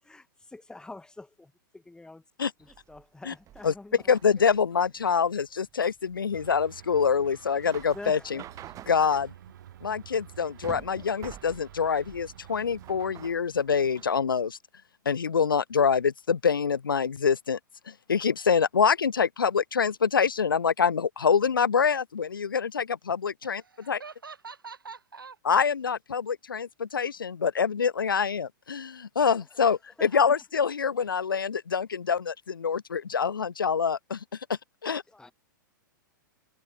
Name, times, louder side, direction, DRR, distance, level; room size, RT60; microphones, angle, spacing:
voice 1, 0.0-4.1 7.9-8.9 29.3-29.6 30.0-30.4 35.1-35.3, left 2 dB, 5° left, 7.3 m, -47 dB
sound 1, 2.6-14.2, right 12 dB, 30° right, 6.0 m, -49 dB
voice 2, 4.1-8.4 8.9-9.3 9.8-14.6 15.1-17.6 17.9-23.6 23.9-24.0 25.5-34.2 34.8-35.0, left 6 dB, 90° left, 0.5 m, -25 dB
sound 2, 6.3-13.3, right 11 dB, 65° right, 3.3 m, -50 dB
voice 3, 23.4-25.4, right 5 dB, 90° right, 4.6 m, -45 dB
hypercardioid pair, 110°, 11 cm